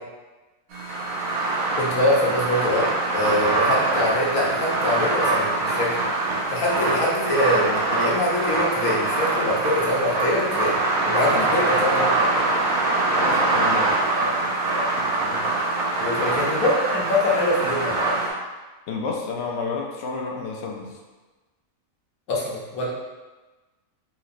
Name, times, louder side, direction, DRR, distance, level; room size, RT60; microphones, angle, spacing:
sound 1, 0.7-18.3, right 2 dB, 80° right, 1.2 m, -23 dB
voice 1, 1.8-2.9 3.1-6.0 6.5-10.8 11.0-12.1 15.2-15.4 16.0-18.1 22.3-22.9, left 1 dB, 85° left, -4 dB, 1.3 m, -24 dB
voice 2, 13.1-14.0 16.2-16.4 18.9-21.0, left 4 dB, 65° left, 0 dB, 0.7 m, -30 dB
4.0 x 2.8 x 2.5 m, 1.2 s
omnidirectional pair, 1.4 m